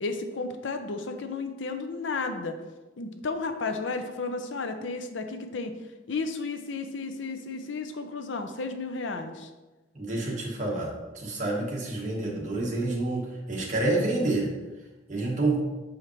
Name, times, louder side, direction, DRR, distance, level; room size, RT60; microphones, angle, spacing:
voice 1, 0.0-2.6 3.0-5.7 6.1-9.5, left 3 dB, 80° left, 7 dB, 0.6 m, -33 dB
voice 2, 9.9-14.5 15.1-15.6, right 2 dB, 40° right, -2 dB, 1.4 m, -28 dB
7.1 x 5.0 x 3.1 m, 1.1 s
head